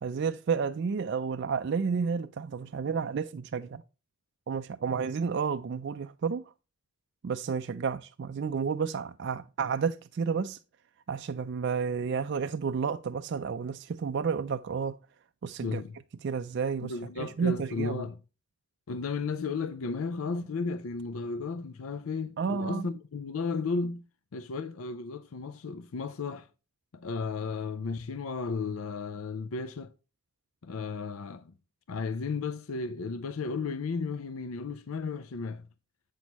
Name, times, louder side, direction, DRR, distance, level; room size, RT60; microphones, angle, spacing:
voice 1, 0.0-3.8 4.5-6.4 7.2-10.6 11.1-15.0 15.4-15.8 16.2-18.0 22.4-22.9, right 6 dB, 50° right, 0.3 m, -31 dB
voice 2, 15.6-16.0 16.8-18.2 18.9-24.0 24.3-26.5 26.9-29.9 30.6-31.5 31.9-35.7, left 4 dB, 75° left, 0.5 m, -34 dB
8.2 x 6.2 x 2.9 m
head